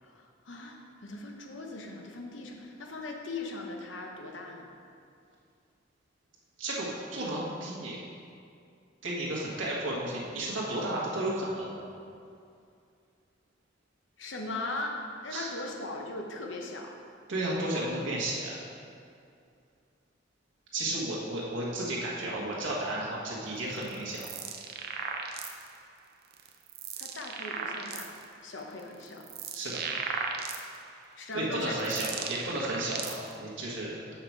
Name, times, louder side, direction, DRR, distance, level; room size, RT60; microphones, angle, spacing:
voice 1, 0.0-4.7 14.2-17.0 20.8-20.9 27.0-28.1 28.4-29.3 31.2-31.8, left 2 dB, 70° left, 1 dB, 0.9 m, -39 dB
voice 2, 6.6-8.0 9.0-11.7 15.3-15.5 17.3-18.6 20.7-24.3 29.5-29.8 31.3-34.1, right 1 dB, 80° right, -5 dB, 1.4 m, -33 dB
sound 1, 23.8-25.8 26.3-28.2 28.8-31.0 31.5-33.4, right 5 dB, 55° right, 0.6 m, -37 dB
6.8 x 5.7 x 4.6 m, 2.4 s
head